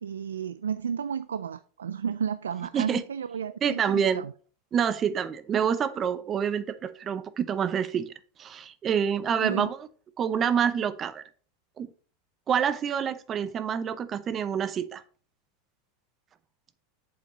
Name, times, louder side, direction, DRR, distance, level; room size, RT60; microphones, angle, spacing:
voice 1, 0.0-4.3 9.4-9.7, right 7 dB, 85° right, 15 dB, 0.3 m, -32 dB
voice 2, 3.6-4.2 4.7-8.1 8.4-9.8 10.2-11.2 11.8-11.9 12.5-15.0, right 8 dB, 35° right, 14 dB, 0.8 m, -27 dB
8.4 x 7.6 x 3.1 m, 0.41 s
hypercardioid pair, 95°, 0 cm